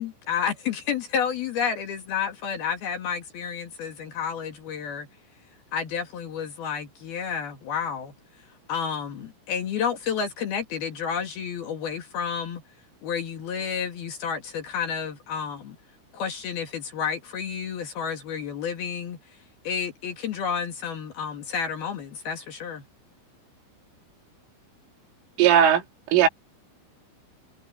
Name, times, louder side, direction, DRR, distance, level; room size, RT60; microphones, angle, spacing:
voice 1, 0.0-5.1 5.7-8.1 8.7-12.6 13.0-15.8 16.1-19.4 19.6-22.8, left 7 dB, 55° left, 3.5 m, -30 dB
voice 2, 25.4-25.8 26.1-26.3, right 9 dB, 80° right, 4.9 m, -17 dB
omnidirectional pair, 5.7 m